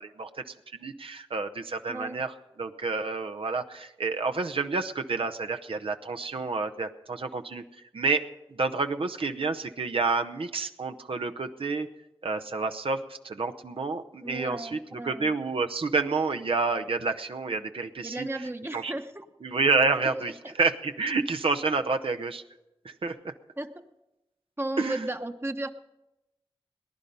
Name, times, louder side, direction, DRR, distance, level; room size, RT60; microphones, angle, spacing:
voice 1, 0.0-7.6 7.9-8.2 8.5-11.9 12.2-18.9 19.4-22.4 22.8-23.3 24.8-25.0, right 4 dB, 65° right, 6 dB, 0.8 m, -29 dB
voice 2, 14.2-15.3 18.0-19.3 20.0-20.5 23.6-23.8 24.6-25.7, right 1 dB, 25° right, 6 dB, 1.0 m, -35 dB
19.0 x 10.0 x 5.4 m, 0.96 s
cardioid pair, 45°, 10 cm